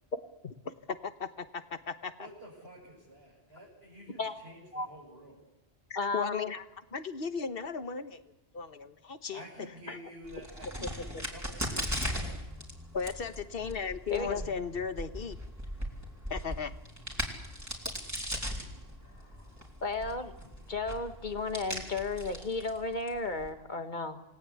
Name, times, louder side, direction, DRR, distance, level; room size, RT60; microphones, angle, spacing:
voice 1, 0.4-2.3 5.9-6.6 6.9-8.2 8.5-9.4 12.9-15.4 16.3-16.7, left 5 dB, 60° left, 10 dB, 1.4 m, -36 dB
voice 2, 2.1-5.4 9.3-12.4 14.2-14.6, equal, 70° right, -5 dB, 7.2 m, -50 dB
voice 3, 6.0-6.5 9.9-10.0 14.1-14.4 19.8-20.3 20.7-24.2, left 3 dB, 45° left, 7 dB, 1.9 m, -34 dB
Crack, 10.2-23.5, equal, 15° right, 3.9 m, -39 dB
28.0 x 19.0 x 8.4 m, 0.97 s
omnidirectional pair, 1.1 m